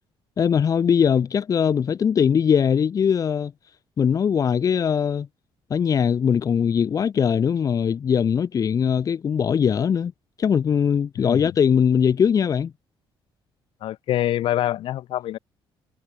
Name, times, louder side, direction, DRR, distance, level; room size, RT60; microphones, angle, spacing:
voice 1, 0.4-3.5 4.0-5.3 5.7-10.1 10.4-12.7, left 7 dB, 40° left, 2.0 m, -21 dB
voice 2, 13.8-15.4, left 13 dB, 70° left, 3.7 m, -25 dB
cardioid pair, 140°, 10 cm